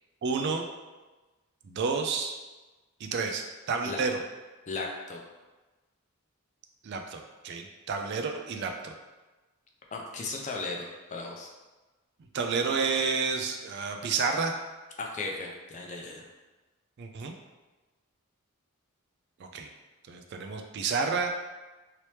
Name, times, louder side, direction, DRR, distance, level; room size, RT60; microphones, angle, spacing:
voice 1, 0.2-0.7 1.6-2.4 3.0-4.2 6.8-8.9 12.3-14.5 17.0-17.3 19.4-19.7 20.1-21.3, right 5 dB, 50° right, 4 dB, 0.3 m, -30 dB
voice 2, 4.7-5.2 9.9-11.5 15.0-16.2, left 3 dB, 35° left, 0 dB, 0.4 m, -36 dB
2.9 x 2.9 x 3.2 m, 1.2 s
head